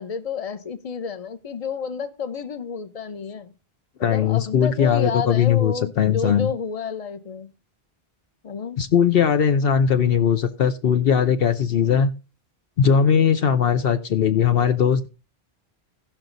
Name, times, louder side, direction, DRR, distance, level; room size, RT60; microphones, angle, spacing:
voice 1, 0.0-3.5 4.0-7.5 8.4-8.8, left 6 dB, 40° left, 0.9 m, -30 dB
voice 2, 4.0-6.5 8.8-12.1 12.8-15.1, left 7 dB, 70° left, 0.9 m, -19 dB
17.0 x 6.0 x 3.9 m
omnidirectional pair, 1.1 m